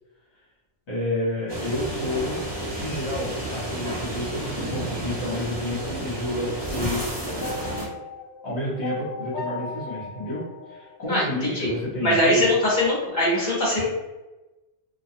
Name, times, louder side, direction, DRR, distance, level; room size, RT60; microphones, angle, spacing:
voice 1, 0.9-2.4 2.8-7.2 8.4-10.4 10.7-12.5, left 1 dB, 55° left, -7 dB, 1.2 m, -30 dB
sound 1, 1.5-7.9, right 1 dB, 35° right, 0.4 m, -31 dB
sound 2, 7.4-11.6, left 3 dB, 80° left, 1.0 m, -36 dB
voice 2, 11.1-11.7 12.0-13.8, left 1 dB, 40° left, -7 dB, 0.9 m, -22 dB
2.4 x 2.3 x 2.7 m, 1.1 s
omnidirectional pair, 1.4 m